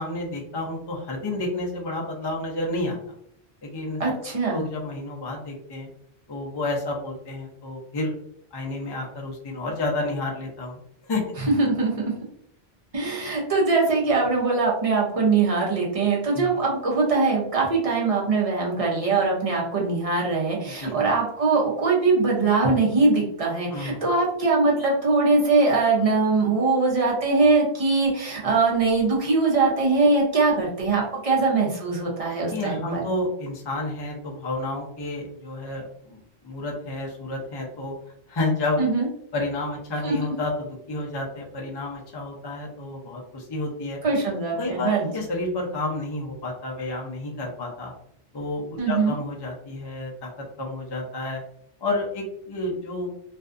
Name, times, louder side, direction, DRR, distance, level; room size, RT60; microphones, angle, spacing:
voice 1, 0.0-3.0 3.6-4.2 4.5-5.9 6.3-8.1 8.5-11.3 16.3-16.5 20.8-20.9 23.7-24.0 32.5-37.9 38.3-38.8 39.3-44.0 44.6-47.9 48.3-51.4 51.8-53.1, left 2 dB, 35° left, -1 dB, 0.4 m, -30 dB
voice 2, 4.0-4.6 11.6-12.0 12.9-33.0 38.8-39.1 40.0-40.1 44.0-45.1 48.8-49.1, right 3 dB, 40° right, -3 dB, 0.7 m, -22 dB
2.5 x 2.3 x 2.4 m, 0.68 s
omnidirectional pair, 1.1 m